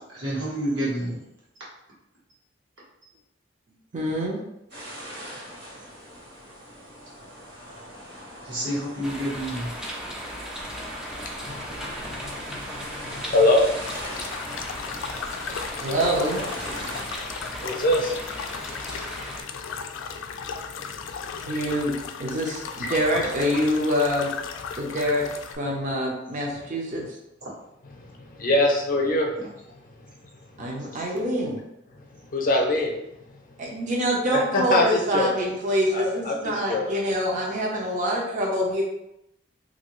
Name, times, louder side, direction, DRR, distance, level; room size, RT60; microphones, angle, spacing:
voice 1, 0.1-1.2 8.4-9.7 27.4-27.5 29.4-29.5 30.8-31.0, right 1 dB, 75° right, -7 dB, 1.4 m, -29 dB
voice 2, 3.9-4.4 15.8-16.4 21.4-21.9 22.2-24.3 24.8-25.2 25.6-27.0 30.6-31.6 33.6-38.8, equal, 40° right, -2 dB, 0.6 m, -25 dB
sound 1, 4.7-17.0, equal, 60° right, 1.4 m, -40 dB
sound 2, 9.0-19.4, equal, 5° right, 0.4 m, -37 dB
voice 3, 11.5-13.6 14.5-15.2 17.0-17.1 17.4-20.3 20.8-21.1 21.3-21.4 28.0-29.3 32.0-32.1 32.3-32.9 34.3-35.3 35.9-36.9, left 1 dB, 45° left, 0 dB, 0.6 m, -25 dB
sound 3, 13.8-25.6, left 6 dB, 85° left, 0.3 m, -36 dB
2.8 x 2.6 x 3.0 m, 0.85 s
head